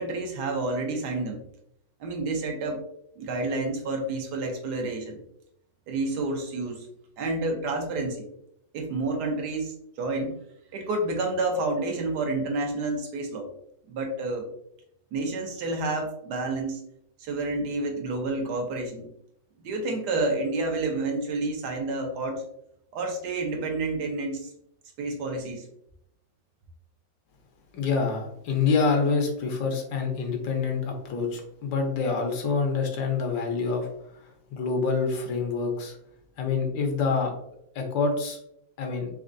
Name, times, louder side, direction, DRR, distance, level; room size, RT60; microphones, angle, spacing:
voice 1, 0.0-1.4 2.0-2.8 3.2-5.2 5.9-6.9 7.2-8.3 8.7-10.3 10.7-13.5 13.9-14.5 15.1-16.8 17.2-19.1 19.6-22.4 22.9-24.5 25.0-25.7, right 2 dB, 70° right, 3 dB, 1.2 m, -29 dB
voice 2, 27.7-33.9 34.5-36.0 36.4-37.3 37.7-38.4 38.8-39.1, left 4 dB, 80° left, 2 dB, 1.6 m, -26 dB
4.2 x 3.4 x 2.5 m, 0.76 s
omnidirectional pair, 2.0 m